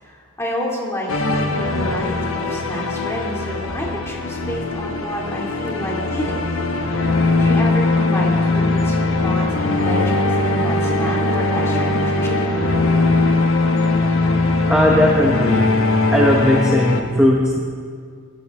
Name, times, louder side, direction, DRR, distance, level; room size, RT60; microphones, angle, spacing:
voice 1, 0.0-6.6 7.4-12.3, equal, 15° left, -3 dB, 2.4 m, -29 dB
sound 1, 1.1-17.0, left 2 dB, 65° left, 1.2 m, -20 dB
voice 2, 14.7-15.7 16.1-17.6, left 1 dB, 5° right, -2 dB, 0.9 m, -17 dB
21.5 x 11.5 x 3.5 m, 2.1 s
head